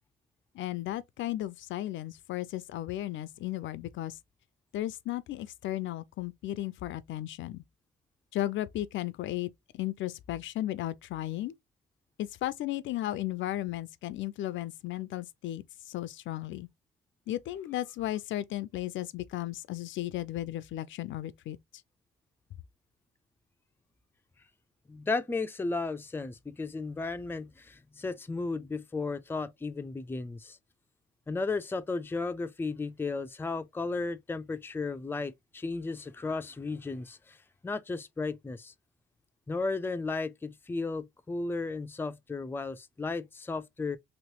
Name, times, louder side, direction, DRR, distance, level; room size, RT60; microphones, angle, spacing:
voice 1, 0.5-4.2 4.7-7.6 8.3-11.5 12.2-16.7 17.3-21.6, left 14 dB, 75° left, 0.4 m, -35 dB
voice 2, 24.9-30.6 31.3-37.4 37.6-38.7 39.5-44.0, left 3 dB, 10° left, 0.4 m, -34 dB
3.1 x 3.0 x 2.9 m
cardioid pair, 90°, 20 cm